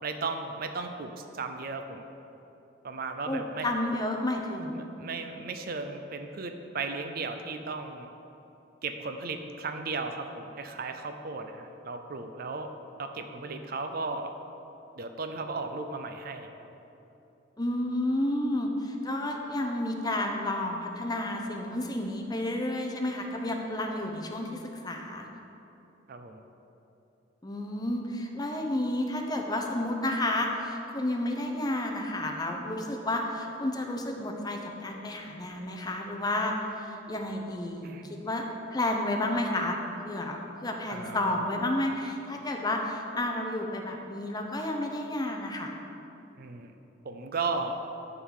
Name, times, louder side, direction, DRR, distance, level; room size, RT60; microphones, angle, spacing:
voice 1, 0.0-2.0 2.8-3.7 4.8-8.1 8.8-12.7 13.0-14.3 15.0-16.7 26.1-26.4 37.8-38.0 40.9-41.4 46.4-46.7 47.0-47.8, right 4 dB, 50° right, 7 dB, 0.5 m, -35 dB
voice 2, 3.3-4.9 17.6-25.3 27.4-38.4 38.7-39.8 40.0-45.7, left 1 dB, 20° left, 2 dB, 0.7 m, -31 dB
11.0 x 3.9 x 6.3 m, 2.9 s
head